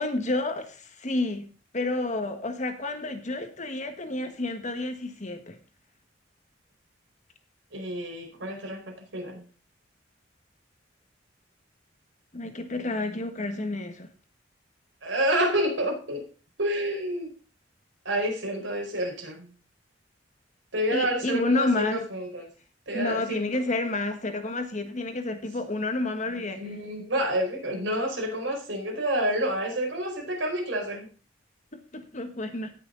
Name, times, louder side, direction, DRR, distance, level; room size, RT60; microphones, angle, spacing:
voice 1, 0.0-1.4 1.7-5.6 12.3-14.1 20.9-22.0 22.9-26.6 31.7-32.7, left 2 dB, 40° left, 7 dB, 1.6 m, -30 dB
voice 2, 7.7-9.4 15.0-16.2 16.6-17.3 18.0-19.5 20.7-22.5 22.9-23.5 26.5-31.1, right 1 dB, 75° right, 0 dB, 4.8 m, -29 dB
17.5 x 6.4 x 4.0 m, 0.36 s
head